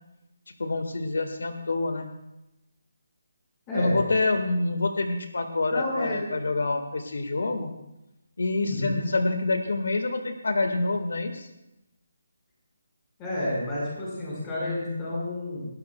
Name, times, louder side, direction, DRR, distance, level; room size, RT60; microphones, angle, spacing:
voice 1, 0.6-2.1 3.7-7.7 8.4-11.5, left 2 dB, 80° left, 6 dB, 1.6 m, -27 dB
voice 2, 3.7-4.0 5.7-6.2 8.7-9.0 13.2-15.7, left 1 dB, 10° left, -6 dB, 4.8 m, -30 dB
28.5 x 12.5 x 2.3 m, 0.91 s
hypercardioid pair, 180°, 0 cm